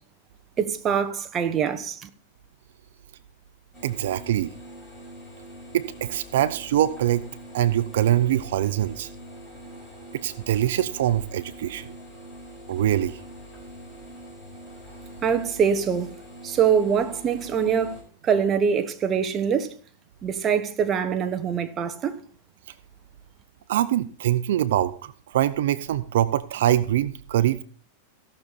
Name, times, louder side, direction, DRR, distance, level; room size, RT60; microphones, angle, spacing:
voice 1, 0.6-2.1 15.2-16.1 16.4-18.0 18.2-19.7 20.2-22.1, right 7 dB, 25° right, 1.1 m, -24 dB
sound 1, 3.7-18.0, equal, 5° left, 6.0 m, -44 dB
voice 2, 3.8-4.5 5.7-7.2 7.5-9.1 10.1-11.9 12.7-13.2 23.7-27.6, right 12 dB, 75° right, 0.6 m, -23 dB
17.0 x 6.7 x 4.2 m
supercardioid pair, 140°, 0 cm